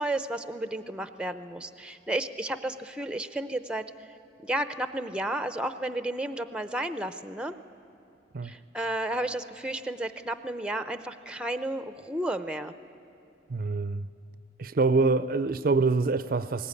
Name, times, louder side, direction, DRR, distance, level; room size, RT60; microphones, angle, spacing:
voice 1, 0.0-3.9 4.4-7.5 8.4-12.7, right 1 dB, 5° right, 0.6 m, -32 dB
voice 2, 13.5-14.1 14.6-16.7, right 3 dB, 50° right, 0.5 m, -25 dB
21.0 x 19.0 x 9.7 m
head